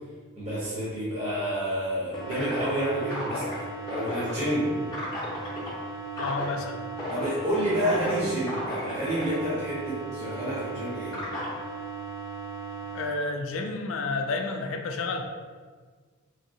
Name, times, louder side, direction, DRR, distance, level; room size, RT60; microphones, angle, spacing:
voice 1, 0.4-3.5 3.9-4.8 7.1-11.2, right 1 dB, 30° right, -9 dB, 0.8 m, -29 dB
sound 1, 2.1-13.1, right 1 dB, 20° left, 0.6 m, -35 dB
voice 2, 6.2-6.8 12.9-15.2, left 3 dB, 65° left, 4 dB, 0.3 m, -30 dB
2.9 x 2.7 x 2.6 m, 1.5 s
head